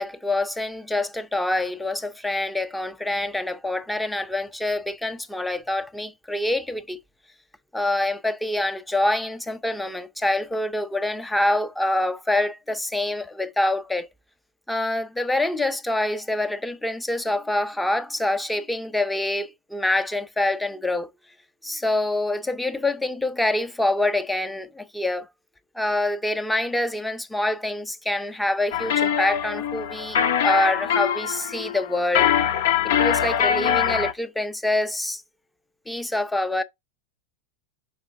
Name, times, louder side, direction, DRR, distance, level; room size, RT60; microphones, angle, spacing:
voice 1, 0.0-7.0 7.7-14.1 14.7-21.1 21.6-25.3 25.8-30.2 30.4-32.3 32.8-35.2 35.9-36.6, left 1 dB, 5° left, 0.6 m, -26 dB
sound 1, 28.7-34.1, left 9 dB, 75° left, 1.0 m, -23 dB
5.2 x 5.0 x 4.6 m
supercardioid pair, 150°, 0 cm